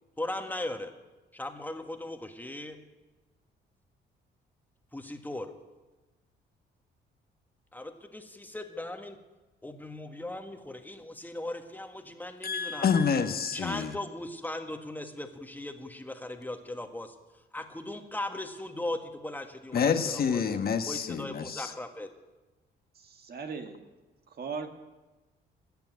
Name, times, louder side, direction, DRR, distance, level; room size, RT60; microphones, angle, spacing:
voice 1, 0.2-0.9 1.3-2.8 4.9-5.5 7.7-9.2 9.6-12.9 13.5-17.1 17.5-20.4 20.9-22.1, left 1 dB, 10° left, 1.7 m, -38 dB
voice 2, 12.4-13.9 19.7-21.7, left 6 dB, 50° left, 1.2 m, -28 dB
voice 3, 23.0-23.8 24.3-24.7, right 5 dB, 50° right, 1.8 m, -38 dB
18.5 x 7.0 x 9.4 m
cardioid pair, 90°, 20 cm